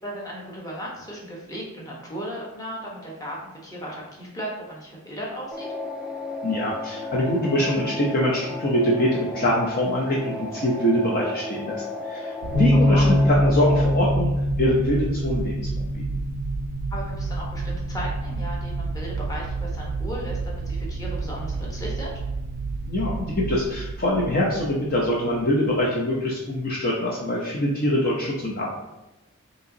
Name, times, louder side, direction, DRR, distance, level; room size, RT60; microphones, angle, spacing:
voice 1, 0.0-3.4 3.6-5.7 12.7-13.1 16.9-22.1, equal, 15° left, -4 dB, 1.0 m, -35 dB
sound 1, 5.5-13.9, left 1 dB, 5° right, 0.4 m, -34 dB
voice 2, 6.4-14.3 14.6-16.0 22.9-28.7, left 1 dB, 45° left, -3 dB, 0.6 m, -24 dB
sound 2, 12.4-25.4, right 4 dB, 85° right, 0.3 m, -31 dB
sound 3, 12.5-18.8, left 1 dB, 60° left, 1.1 m, -24 dB
5.3 x 3.0 x 2.7 m, 0.97 s
head